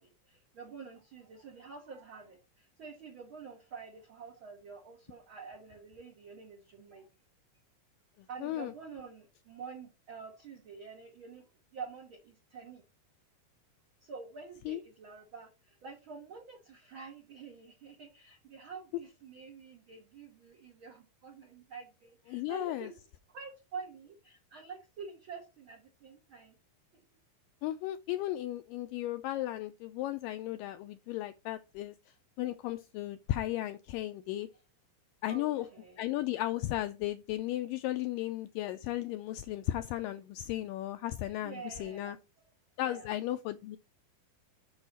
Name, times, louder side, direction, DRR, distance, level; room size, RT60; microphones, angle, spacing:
voice 1, 0.0-7.1 8.3-11.5 11.7-12.8 14.0-23.0 23.3-26.5 35.2-36.0 41.4-42.2 42.8-43.2, right 5 dB, 85° right, 1.1 m, -48 dB
voice 2, 8.4-8.7 14.7-14.8 22.3-22.9 27.6-31.9 32.4-34.5 35.2-35.7 36.0-42.2 42.8-43.8, left 14 dB, 85° left, 1.9 m, -35 dB
6.4 x 6.0 x 4.2 m
omnidirectional pair, 4.3 m